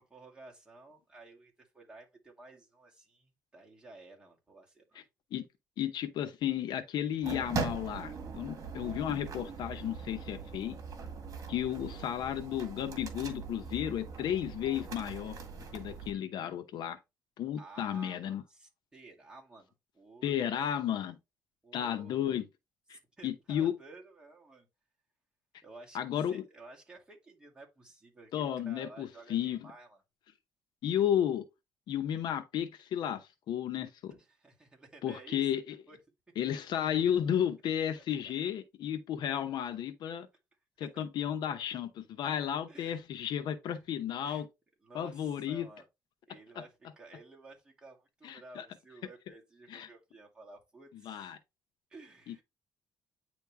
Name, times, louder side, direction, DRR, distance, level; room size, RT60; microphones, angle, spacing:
voice 1, 0.1-5.0 17.6-20.3 21.6-22.2 22.9-24.7 25.6-30.0 34.1-35.5 35.9-36.0 36.4-36.5 40.8-41.0 42.7-43.0 44.2-44.4 44.8-45.9 46.3-51.3 51.9-52.4, right 3 dB, 10° right, 2.2 m, -53 dB
voice 2, 5.8-10.8 11.5-15.4 15.7-17.0 17.4-18.4 20.2-21.2 21.7-22.5 22.9-23.8 25.9-26.4 28.3-29.7 30.8-31.4 31.9-34.1 35.0-35.8 36.4-40.3 40.8-44.5 44.9-45.7 46.6-46.7 48.2-48.7 49.7-49.9 51.0-51.4 52.3-52.4, left 10 dB, 70° left, 0.8 m, -33 dB
sound 1, 7.2-16.1, right 5 dB, 45° right, 1.8 m, -41 dB
9.3 x 3.2 x 3.4 m
cardioid pair, 135°, 8 cm